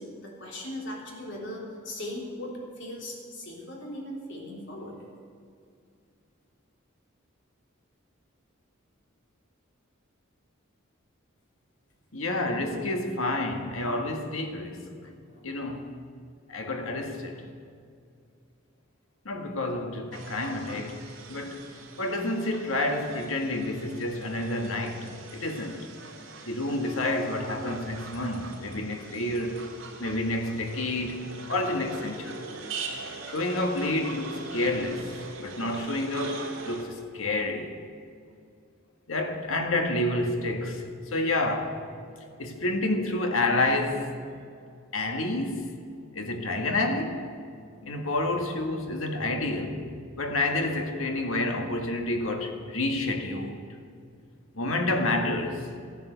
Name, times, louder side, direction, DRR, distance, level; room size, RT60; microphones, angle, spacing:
voice 1, 0.0-5.0 15.3-15.6 49.2-49.3, left 1 dB, 60° left, 3.5 m, -39 dB
voice 2, 12.1-14.9 15.4-15.9 16.5-17.5 19.3-21.7 22.0-25.9 26.5-29.7 30.0-32.4 33.3-37.7 39.1-40.8 41.1-41.8 42.4-44.1 44.9-45.7 46.1-47.2 47.8-49.9 50.2-53.6 54.5-55.6, left 2 dB, 80° left, 1.8 m, -29 dB
sound 1, 20.1-36.8, right 4 dB, 65° right, 3.3 m, -42 dB
14.5 x 10.5 x 8.1 m
head